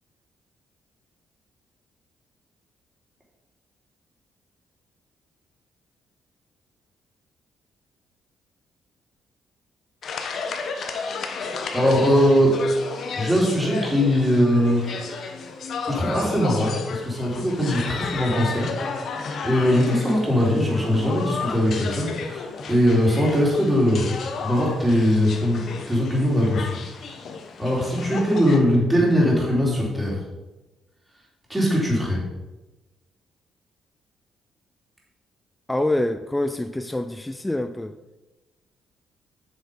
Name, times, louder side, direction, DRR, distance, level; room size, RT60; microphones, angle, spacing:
sound 1, 10.0-28.6, left 4 dB, 60° left, 1.2 m, -33 dB
voice 1, 11.7-12.9 13.2-15.1 15.8-19.0 19.4-24.1 24.4-27.2 27.6-30.2 31.5-32.2, equal, 10° right, -4 dB, 3.7 m, -21 dB
voice 2, 35.7-37.9, left 1 dB, 10° left, 9 dB, 0.4 m, -26 dB
8.2 x 6.4 x 5.5 m, 1.1 s
cardioid pair, 90°, 0 cm